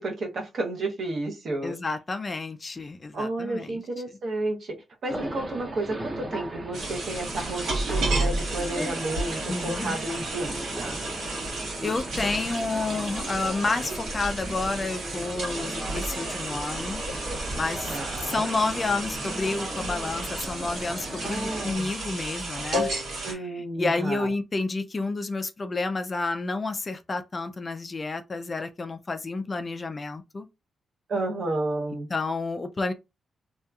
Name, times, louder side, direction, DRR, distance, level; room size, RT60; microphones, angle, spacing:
voice 1, 0.0-1.7 3.1-4.7 5.0-11.0 17.8-18.5 21.2-21.9 23.2-24.3 31.1-32.1, right 2 dB, 55° right, 0.7 m, -31 dB
voice 2, 1.6-3.8 9.5-10.0 11.8-17.0 17.5-17.9 18.2-30.5 32.1-32.9, left 3 dB, 30° left, 0.3 m, -30 dB
sound 1, 5.1-21.7, right 1 dB, 20° right, 0.6 m, -37 dB
sound 2, 6.7-23.3, right 2 dB, 85° right, 1.1 m, -32 dB
2.7 x 2.3 x 2.3 m
cardioid pair, 120°, 0 cm